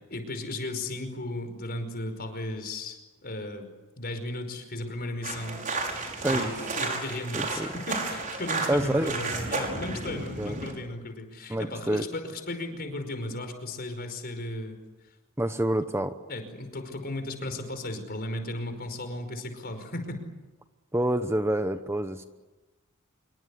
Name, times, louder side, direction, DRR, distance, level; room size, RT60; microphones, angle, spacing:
voice 1, 0.1-3.7 4.0-5.6 6.2-14.8 16.3-20.2, left 1 dB, 45° left, 7 dB, 5.2 m, -35 dB
sound 1, 5.2-10.7, right 3 dB, 40° right, 6.0 m, -32 dB
voice 2, 6.2-6.5 7.3-7.7 8.7-9.1 10.1-10.6 11.5-12.0 15.4-16.2 20.9-22.2, right 1 dB, 10° right, 9 dB, 1.0 m, -27 dB
26.5 x 24.0 x 8.5 m, 1.1 s
head